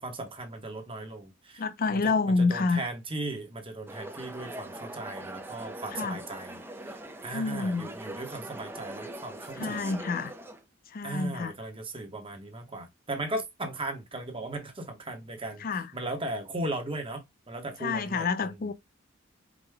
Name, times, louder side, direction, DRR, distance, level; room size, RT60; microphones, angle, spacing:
voice 1, 0.0-1.6 1.9-6.6 7.2-9.9 11.0-18.7, right 2 dB, 25° right, 1.1 m, -37 dB
voice 2, 1.6-2.9 5.9-6.2 7.3-7.9 9.6-10.3 10.9-11.5 15.6-15.9 17.8-18.7, left 4 dB, 45° left, 0.5 m, -28 dB
sound 1, 3.9-10.6, right 1 dB, 10° right, 0.6 m, -42 dB
5.1 x 2.2 x 3.4 m
head